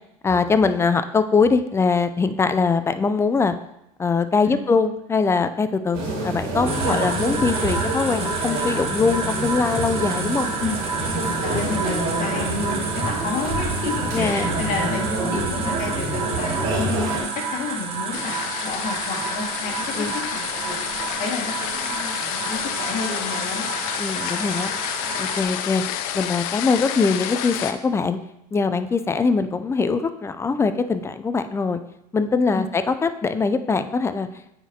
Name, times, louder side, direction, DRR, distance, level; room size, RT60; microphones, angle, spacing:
voice 1, 0.2-3.5 4.0-10.5 14.1-14.5 19.9-20.1 24.0-24.7 25.2-25.8 26.1-28.2 28.5-31.8 32.1-34.4, left 4 dB, 15° left, 10 dB, 0.4 m, -22 dB
sound 1, 5.9-17.2, right 2 dB, 55° right, 2.2 m, -27 dB
sound 2, 6.7-25.4, right 4 dB, 30° right, 1.2 m, -30 dB
voice 2, 11.4-20.1 20.3-23.7 32.5-32.6, left 4 dB, 45° left, 0 dB, 1.8 m, -31 dB
sound 3, 18.1-27.7, left 10 dB, 70° left, 0.5 m, -29 dB
9.3 x 4.1 x 2.8 m, 0.83 s
hypercardioid pair, 85°, 19 cm